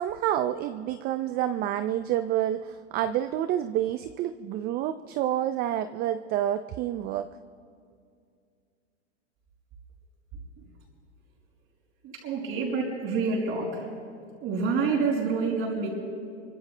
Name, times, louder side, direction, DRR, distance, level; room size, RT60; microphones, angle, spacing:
voice 1, 0.0-7.3, right 11 dB, 30° right, 11 dB, 0.4 m, -28 dB
voice 2, 12.0-13.9 14.4-15.9, right 4 dB, 45° right, -7 dB, 5.3 m, -27 dB
25.5 x 24.5 x 2.2 m, 2.3 s
hypercardioid pair, 115°, 35 cm